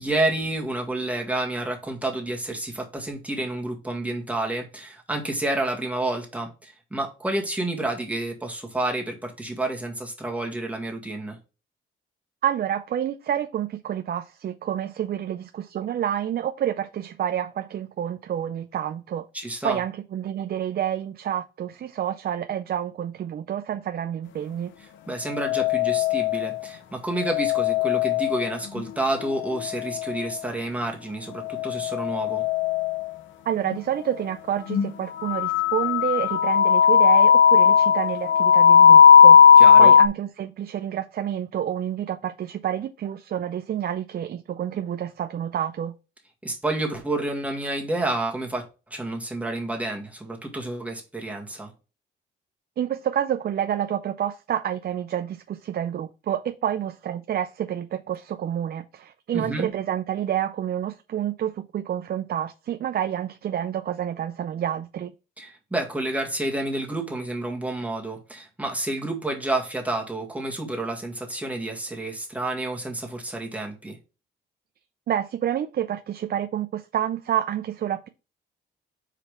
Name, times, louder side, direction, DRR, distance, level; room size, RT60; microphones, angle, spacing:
voice 1, 0.0-11.4 19.3-19.8 25.1-32.5 39.6-40.0 46.4-51.7 59.3-59.7 65.4-74.0, right 2 dB, 5° right, 2.0 m, -29 dB
voice 2, 12.4-19.3 19.6-24.7 33.5-39.5 39.8-46.0 52.8-65.1 75.1-78.1, right 10 dB, 50° right, 0.5 m, -28 dB
sound 1, 25.3-26.6 27.2-28.8 29.2-30.4 31.4-33.1 33.7-33.8 34.7-34.9 35.2-40.1, left 7 dB, 75° left, 0.8 m, -17 dB
5.0 x 4.2 x 5.0 m
cardioid pair, 90°, 20 cm